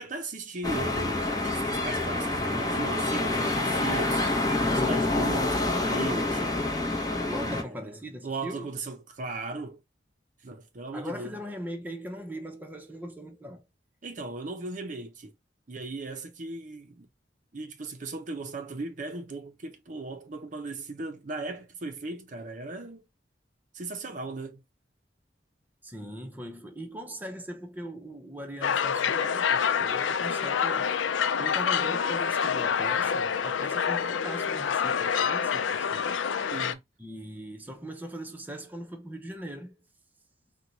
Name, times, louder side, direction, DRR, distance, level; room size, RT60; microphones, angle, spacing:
voice 1, 0.0-4.3 4.7-6.8 7.4-8.0 8.2-9.8 10.4-11.3 14.0-15.3 15.7-17.1 17.5-23.0 23.7-24.6 36.5-36.8, right 3 dB, 45° right, 0.6 m, -37 dB
sound 1, 0.6-7.6, left 2 dB, 20° left, 0.8 m, -27 dB
voice 2, 7.3-8.7 10.9-13.6 25.8-30.9 31.4-36.2 37.0-39.7, equal, 10° right, 0.7 m, -40 dB
sound 2, 28.6-36.7, left 7 dB, 85° left, 0.4 m, -27 dB
4.5 x 2.2 x 3.9 m
head